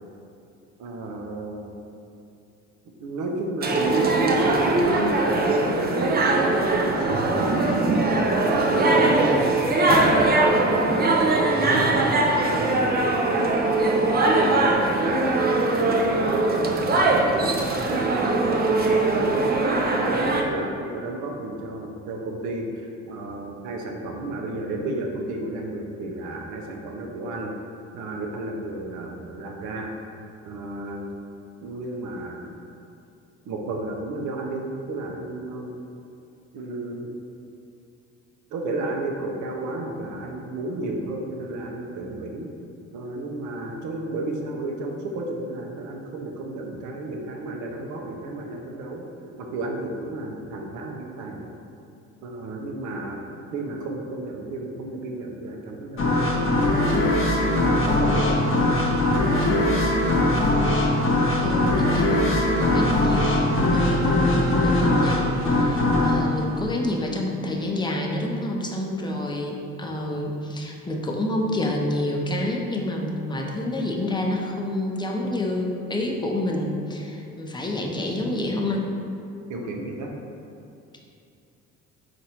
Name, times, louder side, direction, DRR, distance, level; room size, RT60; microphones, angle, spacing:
voice 1, 0.8-1.8 3.0-8.0 8.7-10.5 11.6-13.1 14.1-15.5 15.8-17.6 17.9-19.6 20.1-27.5 27.9-29.9 30.4-31.1 31.6-32.5 33.5-35.7 36.5-37.2 38.5-42.5 42.9-51.5 52.2-56.4 57.5-59.0 79.5-80.1, right 2 dB, 75° right, 1 dB, 0.6 m, -32 dB
sound 1, 3.6-20.4, right 2 dB, 30° right, 0.5 m, -21 dB
sound 2, 56.0-67.4, left 1 dB, 45° left, 0.9 m, -21 dB
voice 2, 61.4-63.4 63.7-78.8, left 1 dB, 15° left, 0 dB, 0.6 m, -28 dB
4.1 x 2.6 x 4.3 m, 2.7 s
supercardioid pair, 75°, 30 cm